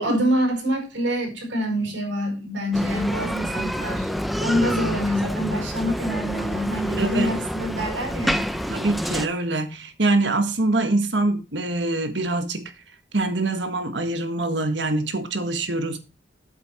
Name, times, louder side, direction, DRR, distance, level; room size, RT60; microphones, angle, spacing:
voice 1, 0.0-4.1 4.4-8.4, equal, 85° right, 4.7 m, -26 dB
Bicycle, 2.7-9.3, equal, ahead, 0.7 m, -28 dB
voice 2, 7.0-7.4 8.7-12.6 13.1-16.0, right 2 dB, 70° right, 1.6 m, -24 dB
8.5 x 8.1 x 4.4 m
head